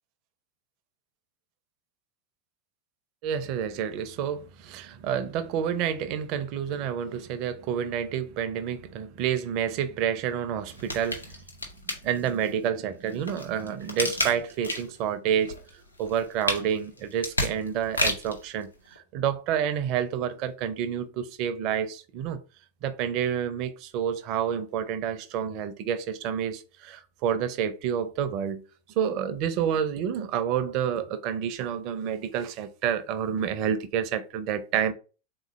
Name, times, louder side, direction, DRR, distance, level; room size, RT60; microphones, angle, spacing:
voice 1, 3.2-11.3 11.9-22.4 22.8-28.6 29.0-34.9, right 8 dB, 40° right, 0.5 m, -29 dB
sound 1, 10.7-12.5 13.0-15.0 15.4-18.4 19.0-19.1, left 2 dB, 85° left, 0.9 m, -31 dB
3.8 x 3.0 x 3.5 m
figure-of-eight pair, 90°, 0 cm